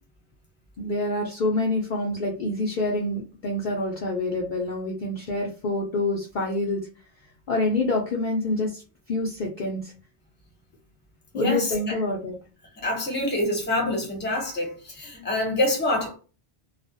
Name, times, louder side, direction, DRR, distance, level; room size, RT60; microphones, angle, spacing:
voice 1, 0.8-6.8 7.5-8.8 9.1-9.9 11.3-12.4, left 2 dB, 60° left, 0.6 m, -26 dB
voice 2, 11.3-12.0 12.8-16.2, left 1 dB, 10° left, 0.7 m, -26 dB
2.3 x 2.1 x 2.6 m
omnidirectional pair, 1.2 m